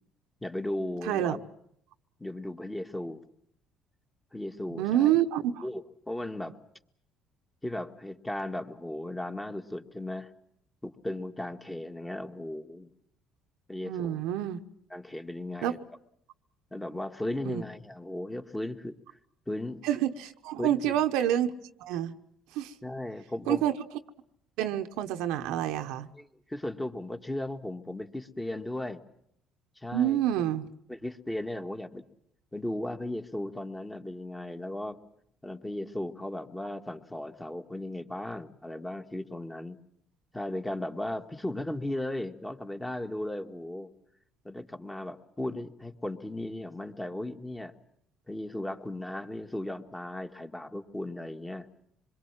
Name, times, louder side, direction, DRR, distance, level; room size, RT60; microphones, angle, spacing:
voice 1, 0.4-1.5 2.2-3.2 4.3-5.2 5.6-6.6 7.6-10.3 10.8-12.9 13.7-14.2 14.9-15.8 16.7-19.0 19.5-19.8 20.6-21.0 22.8-23.7 26.2-29.0 29.8-30.2 30.9-32.0 32.5-35.0 35.4-39.8 40.3-43.9 44.4-47.7 48.3-51.7, left 1 dB, 10° left, 1.8 m, -36 dB
voice 2, 1.0-1.4 4.7-5.6 13.8-14.6 15.6-15.8 17.4-17.6 19.8-21.5 21.8-22.1 22.5-22.7 23.5-23.7 24.6-26.1 29.9-30.7, right 11 dB, 80° right, 1.1 m, -27 dB
26.0 x 22.0 x 7.5 m
supercardioid pair, 85°, 0 cm